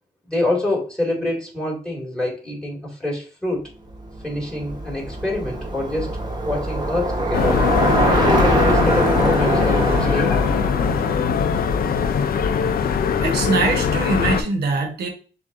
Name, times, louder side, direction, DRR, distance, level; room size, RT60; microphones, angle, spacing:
voice 1, 0.3-3.6 4.2-6.2 6.4-7.6 8.0-10.6, left 1 dB, 5° left, -1 dB, 2.2 m, -26 dB
Bicycle, 4.0-12.4, right 2 dB, 25° right, 1.1 m, -23 dB
sound 1, 7.3-14.4, left 6 dB, 65° left, 0.5 m, -21 dB
voice 2, 13.2-15.1, right 4 dB, 85° right, 4 dB, 1.2 m, -22 dB
6.9 x 2.6 x 2.6 m, 0.37 s
cardioid pair, 85°, 16 cm